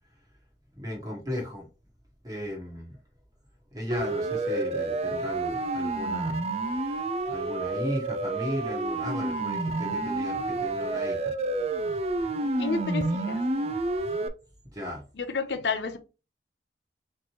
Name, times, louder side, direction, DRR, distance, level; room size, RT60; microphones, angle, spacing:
voice 1, 0.8-1.7 2.2-3.0 3.7-6.5 7.3-11.3 14.7-15.1, left 1 dB, 20° right, 1.3 m, -35 dB
Siren, 3.9-14.3, right 2 dB, 35° right, 0.4 m, -29 dB
voice 2, 12.6-13.4 15.2-16.0, left 4 dB, 75° left, 0.6 m, -30 dB
4.3 x 3.1 x 2.9 m
head